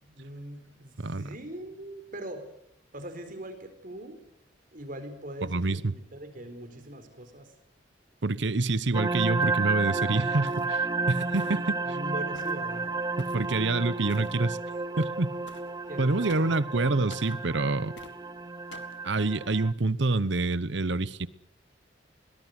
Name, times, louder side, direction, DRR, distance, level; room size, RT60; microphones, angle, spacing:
voice 1, 0.0-2.4 2.9-4.2 4.7-7.5 11.8-12.9 15.9-16.5, right 1 dB, 45° right, 4.3 m, -41 dB
voice 2, 1.0-1.3 5.4-5.9 8.2-12.0 13.3-14.6 15.0-15.3 16.0-17.9 19.0-21.3, right 3 dB, 70° right, 0.9 m, -27 dB
sound 1, 8.9-19.7, right 3 dB, 20° right, 0.9 m, -32 dB
sound 2, 10.5-10.8 11.4-11.8 12.3-12.6 13.2-13.5 14.1-14.4 15.5-15.7 16.3-16.6 17.1-17.4 18.0-18.2 18.7-19.0, left 3 dB, 70° left, 2.2 m, -50 dB
21.5 x 19.5 x 8.1 m
head